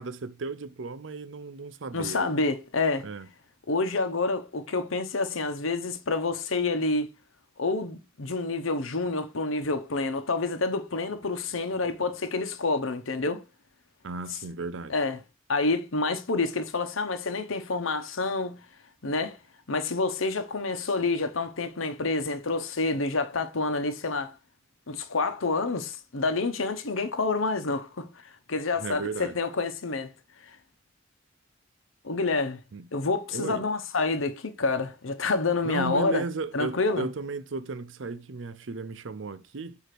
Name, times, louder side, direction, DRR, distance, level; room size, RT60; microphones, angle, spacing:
voice 1, 0.0-2.5 3.0-3.3 14.0-14.9 28.8-29.4 32.7-32.9 33.3-33.6 35.6-39.8, right 3 dB, 65° right, 0.6 m, -35 dB
voice 2, 1.9-3.1 3.7-7.1 7.6-13.4 14.9-15.2 15.5-18.6 19.0-19.4 19.7-24.4 24.9-30.1 30.4-30.6 32.0-32.6 32.9-36.2 36.5-37.1, left 3 dB, 85° left, 1.0 m, -28 dB
8.2 x 2.9 x 6.0 m
head